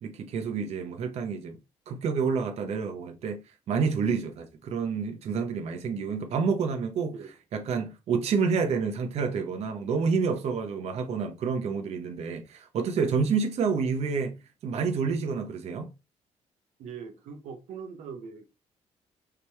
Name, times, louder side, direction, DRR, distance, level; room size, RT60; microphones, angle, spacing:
voice 1, 0.0-1.6 1.9-3.4 3.7-7.1 7.5-14.4 14.6-15.9, right 5 dB, 65° right, 0.8 m, -28 dB
voice 2, 16.8-18.5, right 6 dB, 90° right, 0.9 m, -41 dB
5.0 x 3.1 x 3.4 m
cardioid pair, 120°, 12 cm